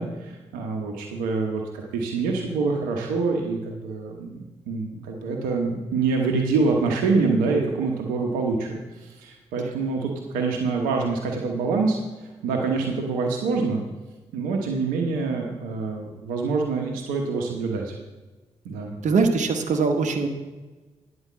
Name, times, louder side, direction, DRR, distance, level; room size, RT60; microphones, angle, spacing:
voice 1, 0.0-12.0 12.4-13.8 14.3-17.9 18.6-19.0, right 4 dB, 85° right, 1 dB, 1.0 m, -26 dB
voice 2, 19.0-20.3, right 4 dB, 60° right, 4 dB, 1.2 m, -21 dB
9.8 x 5.0 x 7.3 m, 1.2 s
hypercardioid pair, 40°, 14 cm